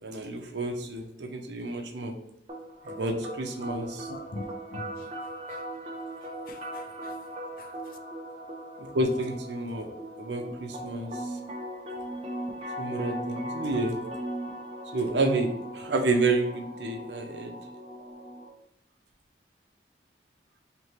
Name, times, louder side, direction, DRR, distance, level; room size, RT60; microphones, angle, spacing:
voice 1, 0.0-2.1 2.8-4.1 8.8-9.9 10.2-11.4 12.8-14.0 14.9-17.6, right 2 dB, 75° right, 0.7 m, -30 dB
sound 1, 2.5-18.5, equal, 35° right, 0.7 m, -39 dB
voice 2, 4.1-4.4 4.7-5.7 6.2-7.2 7.6-8.0, left 2 dB, 50° left, 0.4 m, -44 dB
4.5 x 2.9 x 3.2 m
head